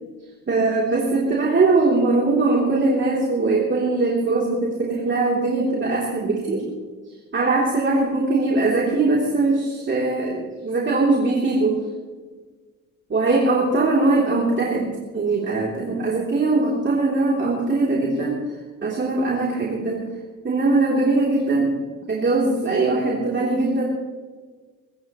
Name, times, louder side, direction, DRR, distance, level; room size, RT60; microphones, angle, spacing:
voice 1, 0.5-6.6 7.3-11.8 13.1-18.4 18.8-20.0 20.4-21.7 22.1-23.8, right 3 dB, 40° right, -5 dB, 3.4 m, -21 dB
23.5 x 15.0 x 3.2 m, 1.4 s
cardioid pair, 90°, 30 cm